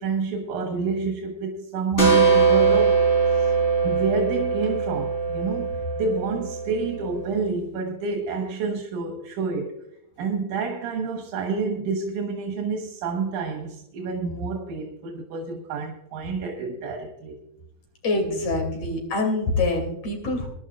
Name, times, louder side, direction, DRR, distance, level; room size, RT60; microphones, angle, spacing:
voice 1, 0.0-3.0 3.3-3.5 3.8-9.7 10.2-17.4, right 4 dB, 90° right, 2.8 m, -28 dB
sound 1, 2.0-7.4, right 5 dB, 15° left, 3.7 m, -22 dB
voice 2, 18.0-20.5, left 2 dB, 55° left, 3.9 m, -25 dB
22.5 x 11.0 x 2.4 m
omnidirectional pair, 3.4 m